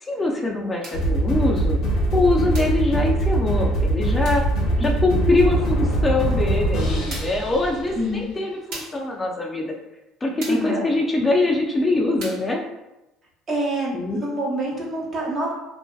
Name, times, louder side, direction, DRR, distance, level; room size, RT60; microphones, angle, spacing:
voice 1, 0.0-1.8 2.1-4.4 4.8-9.7 10.2-12.6 13.9-14.3, left 2 dB, 25° left, 0 dB, 0.4 m, -23 dB
sound 1, 0.8-1.1 2.5-2.8 4.2-4.5 6.3-6.4 7.1-7.5 8.7-9.1 10.4-10.7 12.2-12.5, right 2 dB, 75° right, 0.9 m, -37 dB
sound 2, 0.9-8.3, right 1 dB, 60° left, 0.8 m, -22 dB
voice 2, 4.8-5.2 8.0-8.3 10.5-10.9 13.5-15.5, right 1 dB, 40° right, -3 dB, 0.8 m, -27 dB
2.5 x 2.1 x 2.3 m, 0.93 s
supercardioid pair, 80°, 0 cm